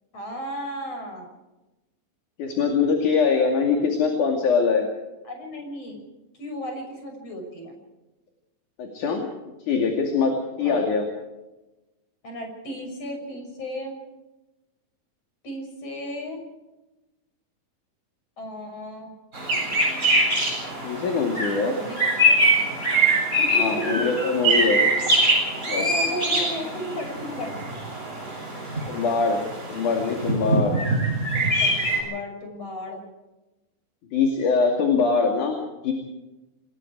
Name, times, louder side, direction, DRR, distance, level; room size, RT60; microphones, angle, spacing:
voice 1, 0.1-1.3 5.2-6.0 6.4-7.7 10.6-10.9 12.2-13.9 15.4-16.4 18.4-19.1 21.7-22.0 22.3-22.4 23.4-24.0 24.4-24.6 25.7-27.6 30.7-30.8 31.3-33.0, equal, 45° left, 3 dB, 7.2 m, -34 dB
voice 2, 2.4-4.9 8.8-9.3 9.7-11.1 20.8-21.7 23.5-24.8 25.7-25.9 28.9-29.4 29.7-30.8 34.1-35.6 35.8-35.9, left 5 dB, 60° left, 2 dB, 3.9 m, -23 dB
sound 1, 19.3-32.0, right 1 dB, 20° right, 8.0 m, -23 dB
28.0 x 20.5 x 4.8 m, 1.0 s
omnidirectional pair, 4.1 m